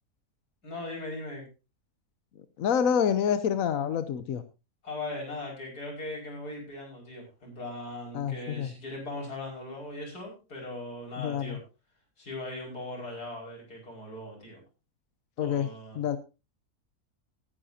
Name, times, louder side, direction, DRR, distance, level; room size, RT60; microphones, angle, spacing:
voice 1, 0.6-1.5 4.8-11.6 12.2-14.6 15.4-16.2, left 2 dB, 85° left, 0 dB, 5.7 m, -39 dB
voice 2, 2.6-4.4 8.1-8.7 11.2-11.6 15.4-15.7 16.0-16.2, left 8 dB, 65° left, 12 dB, 1.1 m, -27 dB
19.0 x 9.9 x 2.7 m, 0.29 s
omnidirectional pair, 1.6 m